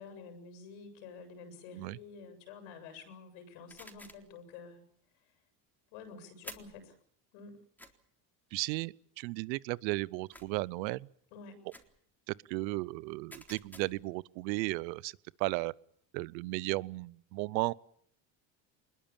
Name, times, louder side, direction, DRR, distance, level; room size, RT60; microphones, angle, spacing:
voice 1, 0.0-4.8 5.9-7.0 7.3-7.6 11.3-11.6, left 5 dB, 80° left, 7.6 m, -49 dB
sound 1, 3.7-4.3 6.4-6.8 7.8-7.9 10.3-10.7 11.7-12.0 13.3-14.1, equal, 5° left, 3.9 m, -51 dB
voice 2, 8.5-11.1 12.3-15.7 16.1-17.7, right 22 dB, 85° right, 0.9 m, -35 dB
24.0 x 21.5 x 7.2 m
supercardioid pair, 90°, 49 cm